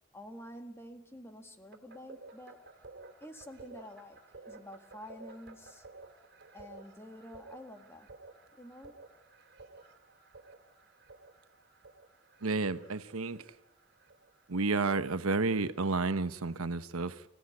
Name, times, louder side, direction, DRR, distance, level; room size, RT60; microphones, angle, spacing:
voice 1, 0.1-2.6 3.2-5.9 6.5-8.1 8.5-9.0, left 1 dB, 10° left, 1.8 m, -49 dB
sound 1, 1.7-16.5, right 3 dB, 50° right, 3.0 m, -54 dB
voice 2, 12.4-13.5 14.5-17.2, right 3 dB, 90° right, 1.0 m, -31 dB
26.0 x 16.0 x 9.7 m
head